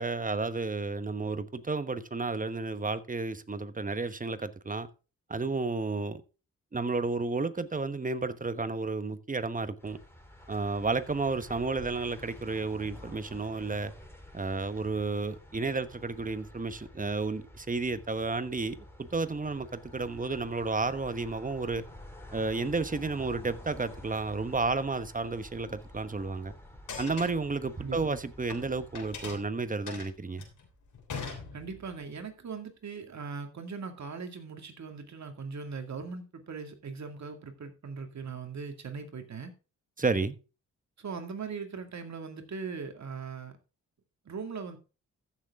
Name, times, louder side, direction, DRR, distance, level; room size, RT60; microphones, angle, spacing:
voice 1, 0.0-4.9 5.3-6.2 6.7-10.0 10.5-13.9 14.3-21.8 22.3-26.5 27.0-30.5 40.0-40.4, right 3 dB, 25° right, 1.1 m, -32 dB
sound 1, 9.8-29.3, left 1 dB, 5° left, 3.5 m, -50 dB
sound 2, 26.8-28.6 28.9-32.0, left 5 dB, 65° left, 3.2 m, -42 dB
voice 2, 27.8-28.1 31.5-39.5 41.0-43.5 44.3-44.8, right 5 dB, 55° right, 2.2 m, -40 dB
14.5 x 6.8 x 3.6 m
supercardioid pair, 55°, 33 cm